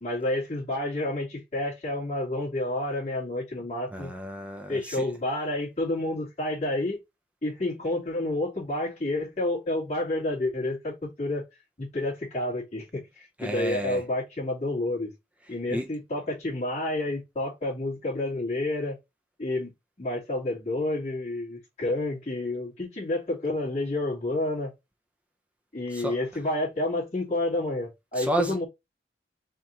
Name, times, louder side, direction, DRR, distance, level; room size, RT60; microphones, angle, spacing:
voice 1, 0.0-4.1 4.7-7.0 7.4-11.4 11.8-15.1 15.5-19.0 19.4-19.7 20.0-24.7 25.7-28.6, left 1 dB, 40° left, 2.6 m, -29 dB
voice 2, 3.9-5.1 13.4-14.0 15.7-15.9 25.9-26.2 28.1-28.6, right 1 dB, 5° right, 0.5 m, -31 dB
4.4 x 3.0 x 3.8 m
head